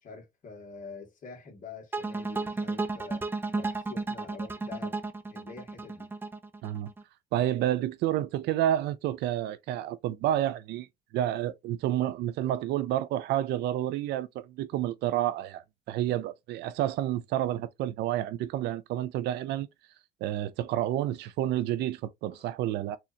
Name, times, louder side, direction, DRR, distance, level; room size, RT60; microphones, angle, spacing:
voice 1, 0.0-3.3 3.5-5.0 5.3-6.1 22.3-22.5, left 5 dB, 50° left, 1.8 m, -46 dB
sound 1, 1.9-7.0, right 3 dB, 15° right, 0.5 m, -33 dB
voice 2, 7.3-10.9 11.1-19.7 20.2-23.0, right 12 dB, 80° right, 0.5 m, -29 dB
4.3 x 2.5 x 2.7 m
cardioid pair, 110°, 17 cm